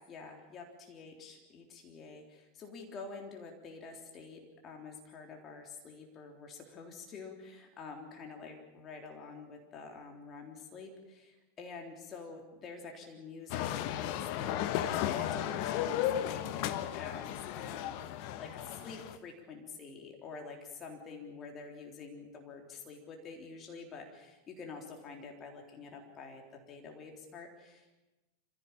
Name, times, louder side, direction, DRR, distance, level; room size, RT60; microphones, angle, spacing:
voice 1, 0.1-28.0, left 4 dB, 25° left, 2 dB, 3.6 m, -48 dB
sound 1, 13.5-19.2, left 11 dB, 45° left, 1.2 m, -34 dB
26.0 x 16.5 x 8.8 m, 1.1 s
figure-of-eight pair, 90°, 0 cm